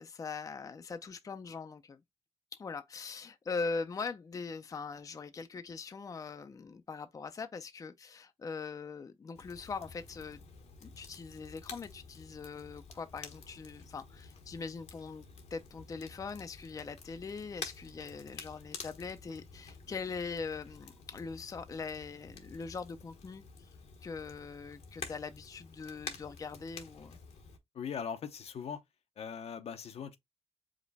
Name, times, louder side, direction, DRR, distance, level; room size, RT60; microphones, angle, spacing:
voice 1, 0.0-2.0 2.5-10.4 10.8-23.7 24.0-27.2, left 4 dB, 30° left, 0.4 m, -41 dB
Crackle, 9.3-27.6, left 5 dB, 85° left, 1.2 m, -50 dB
voice 2, 27.7-28.8 29.2-30.2, left 7 dB, 70° left, 0.7 m, -40 dB
5.0 x 2.1 x 3.9 m
cardioid pair, 110°, 11 cm